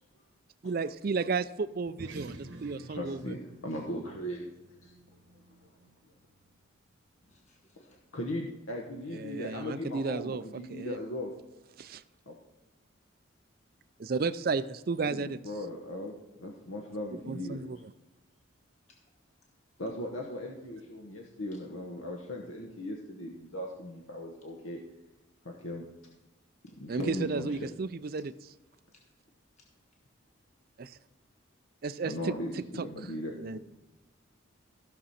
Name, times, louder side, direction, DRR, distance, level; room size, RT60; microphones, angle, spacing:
voice 1, 0.6-3.3 9.2-10.4 10.7-11.0 11.8-12.0 14.0-15.4 17.3-17.8 26.9-28.3 30.8-30.9 31.8-32.1 33.4-33.6, right 4 dB, 45° right, 0.4 m, -33 dB
sound 1, 1.8-6.6, right 2 dB, 65° right, 1.1 m, -49 dB
voice 2, 2.9-4.5 4.8-4.9 5.6-5.7 7.9-11.3 12.3-12.4 15.0-17.6 19.8-24.8 25.4-25.9 26.8-27.7 32.0-33.3, left 1 dB, 80° left, 1.2 m, -38 dB
voice 3, 7.3-7.9 33.5-33.6, left 1 dB, 35° left, 1.4 m, -57 dB
15.5 x 6.2 x 4.2 m
head